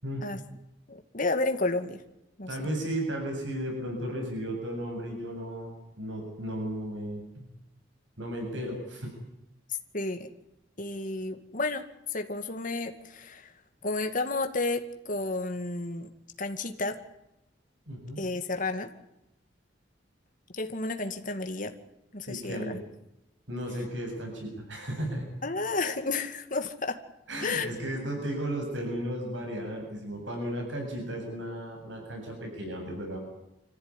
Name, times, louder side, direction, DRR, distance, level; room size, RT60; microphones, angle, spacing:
voice 1, 0.9-2.0 2.4-2.6 9.9-10.3 10.8-11.8 12.1-13.5 13.8-16.1 16.4-17.0 18.2-18.9 20.5-21.7 22.1-22.8 25.4-27.0 27.4-27.7, left 3 dB, 45° left, 6 dB, 2.2 m, -31 dB
voice 2, 2.5-7.5 8.2-9.2 17.9-18.3 22.3-22.8 23.5-25.3 27.3-33.2, right 1 dB, 80° right, 2 dB, 7.9 m, -35 dB
26.5 x 15.0 x 10.0 m, 0.90 s
head